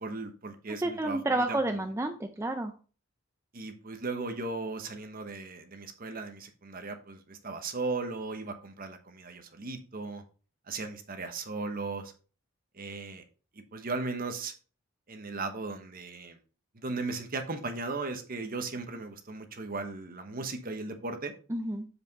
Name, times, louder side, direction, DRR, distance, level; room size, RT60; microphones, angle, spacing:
voice 1, 0.0-1.8 3.5-10.2 10.7-12.1 12.7-13.2 13.7-14.5 15.1-16.4 16.7-21.3, right 3 dB, 45° right, 7 dB, 1.0 m, -37 dB
voice 2, 0.8-2.7 21.5-21.9, right 1 dB, 15° right, 5 dB, 0.5 m, -30 dB
7.5 x 5.1 x 4.0 m, 0.37 s
head